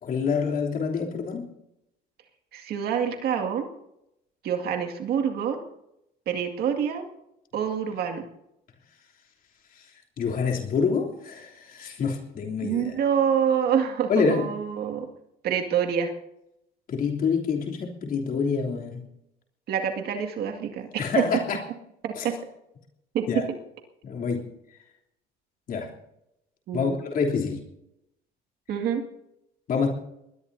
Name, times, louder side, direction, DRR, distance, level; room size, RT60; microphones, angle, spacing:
voice 1, 0.0-1.5 9.7-9.9 10.2-12.9 14.1-14.5 16.9-19.0 21.0-21.6 22.1-22.3 23.3-23.5 24.0-24.5 25.7-25.9 26.7-27.6 29.7-29.9, left 5 dB, 55° left, 0 dB, 3.1 m, -27 dB
voice 2, 2.5-3.7 4.4-5.6 6.3-7.1 7.5-8.3 12.6-15.1 15.4-16.1 19.7-21.2 22.0-22.3 23.1-23.3 26.7-27.0 28.7-29.0, right 8 dB, 70° right, 4 dB, 2.1 m, -26 dB
21.0 x 20.5 x 2.7 m, 0.83 s
cardioid pair, 110°, 17 cm